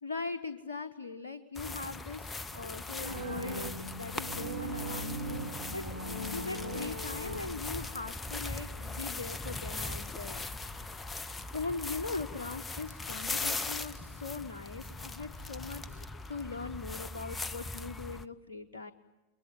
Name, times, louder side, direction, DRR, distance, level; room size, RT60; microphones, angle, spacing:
voice 1, 0.0-5.9 6.1-10.4 11.5-18.9, left 4 dB, 70° left, 9 dB, 1.1 m, -40 dB
sound 1, 1.6-18.3, left 3 dB, 15° left, 0.9 m, -40 dB
sound 2, 3.0-8.0, right 1 dB, 85° right, 1.9 m, -39 dB
29.5 x 22.0 x 9.0 m, 1.1 s
figure-of-eight pair, 90°, 0 cm